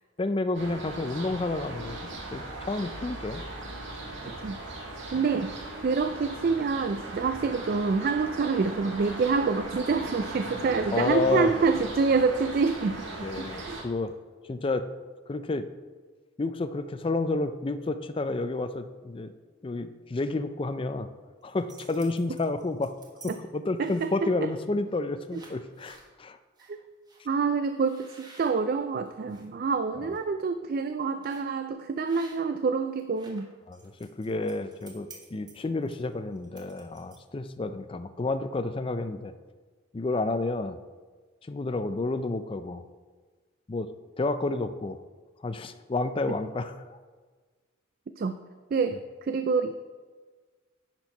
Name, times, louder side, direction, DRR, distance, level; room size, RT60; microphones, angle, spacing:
voice 1, 0.2-2.0 2.3-3.4 10.9-11.5 13.2-14.1 14.4-14.9 15.3-15.7 16.4-19.3 19.6-21.1 21.4-22.9 23.2-26.4 30.0-30.1 33.7-39.3 39.9-40.8 41.5-42.8 43.7-43.9 44.2-45.0 45.4-47.0, left 2 dB, 25° left, 11 dB, 0.4 m, -30 dB
sound 1, 0.5-13.8, right 2 dB, 65° right, 1.8 m, -38 dB
voice 2, 4.2-4.6 5.1-5.5 5.8-13.1 13.4-13.8 23.8-24.5 25.3-25.4 26.7-26.8 27.3-33.5 48.2-48.3 48.7-49.7, right 4 dB, 50° right, 9 dB, 0.3 m, -27 dB
sound 2, 21.4-23.3 23.8-24.3 24.8-25.0 25.3-26.1 26.6-26.7 27.1-27.2 27.8-29.5 29.9-30.2 31.2-31.5 32.0-32.6 32.9-37.4, right 3 dB, 20° right, 1.3 m, -52 dB
10.5 x 4.5 x 5.3 m, 1.4 s
head